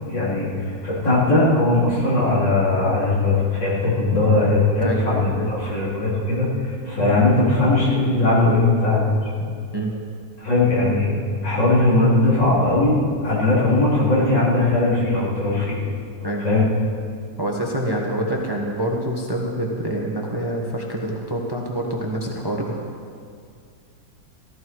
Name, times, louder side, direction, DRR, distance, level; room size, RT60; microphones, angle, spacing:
voice 1, 0.1-0.5 0.8-9.2 10.4-11.1 11.4-13.0 13.2-15.8 16.4-16.7, left 2 dB, 80° left, -8 dB, 4.5 m, -19 dB
voice 2, 3.9-4.2 4.8-5.1 5.3-5.5 7.0-7.2 9.7-9.9 16.2-16.4 17.4-22.8, right 1 dB, 15° right, -1 dB, 1.2 m, -26 dB
15.0 x 14.0 x 4.7 m, 2.2 s
omnidirectional pair, 1.9 m